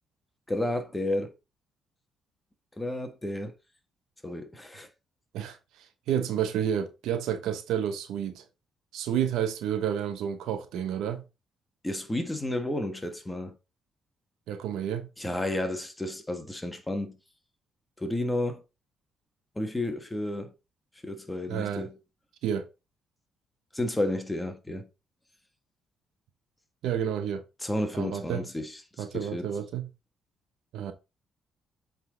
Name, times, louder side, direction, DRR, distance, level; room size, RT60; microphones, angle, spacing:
voice 1, 0.5-1.3 2.8-3.5 4.2-4.9 11.8-13.5 15.2-17.2 18.0-18.6 19.5-20.5 21.0-22.0 23.7-24.9 27.6-28.7 29.1-29.5, left 1 dB, 10° left, 1.5 m, -31 dB
voice 2, 5.3-8.4 8.9-11.2 14.5-15.1 21.5-21.9 22.4-22.7 26.8-27.4 27.9-28.5 29.0-29.9 30.7-30.9, right 9 dB, 85° right, 1.0 m, -30 dB
8.0 x 3.9 x 3.9 m
cardioid pair, 90°, 0 cm